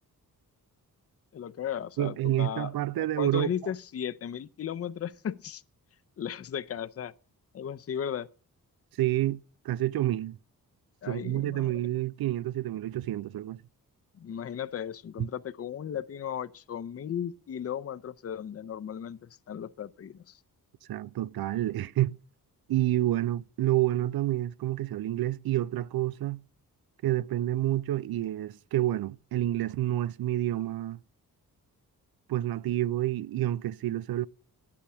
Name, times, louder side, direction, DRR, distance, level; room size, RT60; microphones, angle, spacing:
voice 1, 1.3-5.6 6.2-7.1 7.5-8.3 11.0-11.8 14.1-20.4, left 9 dB, 40° left, 0.5 m, -36 dB
voice 2, 2.0-3.5 9.0-9.4 9.6-10.4 11.0-13.6 20.9-22.1 22.7-26.4 27.0-31.0 32.3-34.3, right 14 dB, 80° right, 0.5 m, -28 dB
10.0 x 8.6 x 6.0 m
wide cardioid pair, 105°, 36 cm